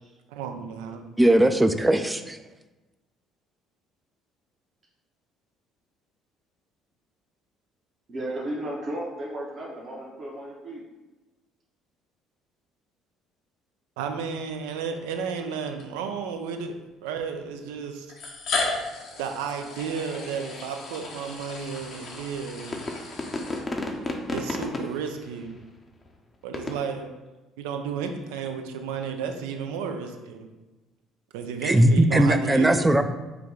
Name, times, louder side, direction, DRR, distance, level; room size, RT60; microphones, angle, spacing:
voice 1, 0.3-1.0 14.0-18.1 19.2-22.8 24.3-25.6 26.4-27.1 27.6-30.5 31.3-33.0, right 6 dB, 80° right, 5 dB, 0.4 m, -33 dB
voice 2, 1.2-2.4 31.6-33.0, right 1 dB, 10° right, 9 dB, 0.4 m, -19 dB
voice 3, 8.1-10.8 18.7-18.8 22.7-23.0, right 1 dB, 45° right, -4 dB, 0.9 m, -35 dB
sound 1, 14.6-14.8 15.8-15.9 17.1-17.2 18.1-24.1, left 3 dB, 65° left, 0.8 m, -35 dB
sound 2, 21.8-21.9 22.7-25.6 26.1-26.2 26.5-26.8, left 2 dB, 30° left, 0.6 m, -31 dB
4.6 x 2.2 x 3.7 m, 1.1 s
hypercardioid pair, 55°, 0 cm